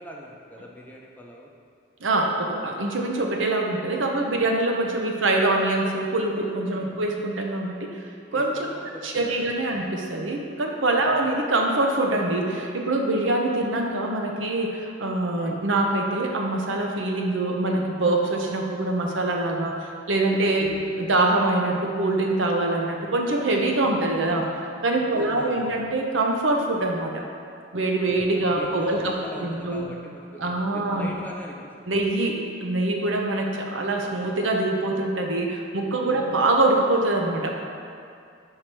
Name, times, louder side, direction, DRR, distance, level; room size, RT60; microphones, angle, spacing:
voice 1, 0.0-1.5 6.7-7.0 8.3-9.6 11.0-11.2 20.6-20.9 25.1-25.8 28.0-31.6 36.0-36.3, left 1 dB, 10° left, -2 dB, 0.6 m, -41 dB
voice 2, 2.0-8.0 8.3-8.5 9.0-20.7 21.0-24.5 24.8-27.2 27.7-29.1 29.4-29.9 30.4-31.1 31.9-37.5, right 2 dB, 75° right, 1 dB, 0.8 m, -24 dB
4.7 x 4.7 x 6.0 m, 2.4 s
head